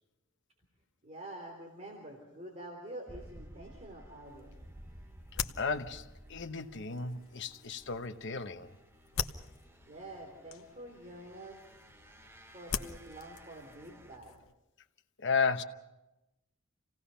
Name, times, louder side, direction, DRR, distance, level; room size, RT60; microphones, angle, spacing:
voice 1, 1.0-4.6 9.8-11.6 12.5-14.3, right 1 dB, 30° right, 3.4 m, -47 dB
sound 1, 3.1-14.2, right 1 dB, 10° right, 1.1 m, -55 dB
sound 2, 4.2-14.5, left 7 dB, 80° left, 1.0 m, -44 dB
voice 2, 5.6-8.7 15.2-15.6, left 5 dB, 60° left, 1.1 m, -34 dB
28.0 x 18.0 x 5.7 m
head